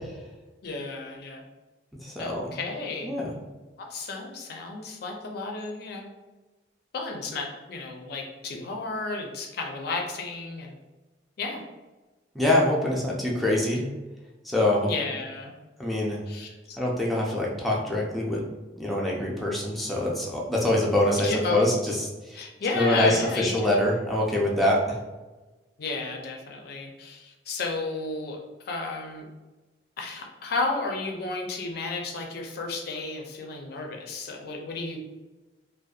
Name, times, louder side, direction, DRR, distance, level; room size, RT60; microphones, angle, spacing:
voice 1, 0.6-1.4 2.2-3.2 3.8-6.1 6.9-10.8 11.4-11.6 14.8-15.5 16.3-16.8 21.2-21.7 22.3-23.7 25.8-28.4 28.7-29.3 30.0-35.0, left 3 dB, 60° left, 1 dB, 0.4 m, -33 dB
voice 2, 2.0-2.5 3.0-3.3 12.4-13.8 14.4-14.9 15.8-16.2 16.8-18.4 18.8-22.4 22.7-24.8, left 1 dB, ahead, -4 dB, 0.4 m, -24 dB
2.6 x 2.1 x 2.3 m, 1.2 s
head